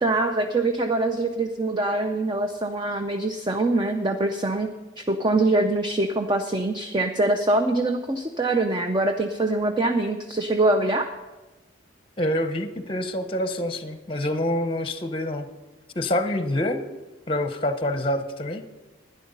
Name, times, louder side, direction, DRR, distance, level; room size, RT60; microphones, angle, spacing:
voice 1, 0.0-4.7 5.0-11.1, right 2 dB, 20° right, 5 dB, 0.5 m, -24 dB
voice 2, 12.2-15.5 15.9-16.8 17.3-18.6, left 1 dB, 25° left, 8 dB, 0.7 m, -26 dB
12.0 x 10.0 x 5.4 m, 1.1 s
head